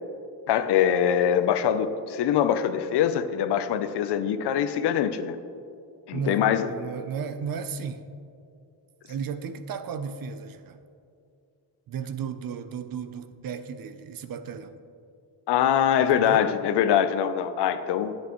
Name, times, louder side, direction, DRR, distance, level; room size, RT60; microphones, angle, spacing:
voice 1, 0.5-5.4 6.1-6.7 15.5-18.2, left 9 dB, 70° left, 11 dB, 0.6 m, -23 dB
voice 2, 6.1-8.1 9.1-10.8 11.9-14.7 16.1-16.5, right 6 dB, 55° right, 10 dB, 0.7 m, -34 dB
10.5 x 9.0 x 3.1 m, 2.4 s
cardioid pair, 95°, 42 cm